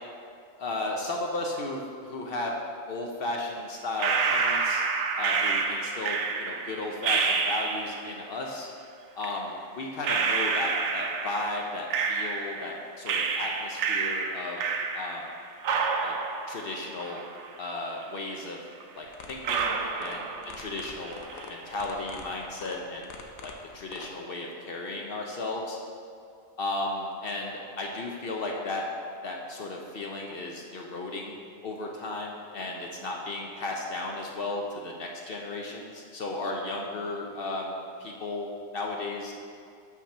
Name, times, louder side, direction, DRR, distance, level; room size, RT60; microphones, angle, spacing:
voice 1, 0.6-2.5 2.9-4.8 5.2-8.7 9.2-14.6 14.9-15.3 16.0-16.2 16.5-17.2 17.6-18.6 18.9-20.3 20.6-21.2 21.5-23.1 23.4-25.8 26.6-28.9 29.2-37.7 38.0-39.3, left 2 dB, 55° left, 0 dB, 0.7 m, -34 dB
sound 1, 4.0-8.1 9.2-9.3 10.0-12.7 13.1-15.3 15.6-17.7 18.0-18.1 18.8-18.9 19.4-20.8 21.0-21.6, right 5 dB, 70° right, 0.8 m, -29 dB
sound 2, 19.1-24.1, left 5 dB, 90° left, 1.1 m, -44 dB
5.9 x 4.2 x 5.8 m, 2.3 s
omnidirectional pair, 1.4 m